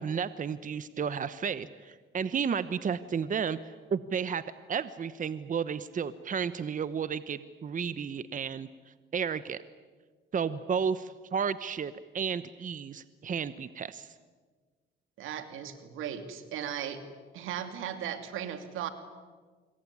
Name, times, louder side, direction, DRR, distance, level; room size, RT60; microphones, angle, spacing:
voice 1, 0.0-3.6 3.9-4.4 4.7-8.7 9.1-9.6 10.3-14.1, right 6 dB, 40° right, 14 dB, 1.1 m, -32 dB
voice 2, 15.2-17.0 17.3-18.9, right 9 dB, 90° right, 9 dB, 2.7 m, -37 dB
26.0 x 22.5 x 9.8 m, 1.5 s
cardioid pair, 90°, 20 cm